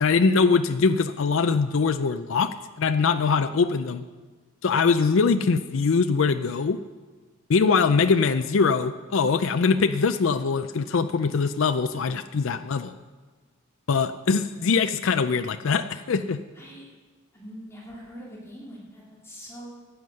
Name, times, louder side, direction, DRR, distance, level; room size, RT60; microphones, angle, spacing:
voice 1, 0.0-4.0 4.6-6.8 7.5-13.0 13.9-16.4, left 5 dB, 65° left, 9 dB, 0.5 m, -22 dB
voice 2, 16.5-16.9 17.3-19.7, equal, 10° left, -5 dB, 2.5 m, -43 dB
15.0 x 9.2 x 6.4 m, 1.3 s
head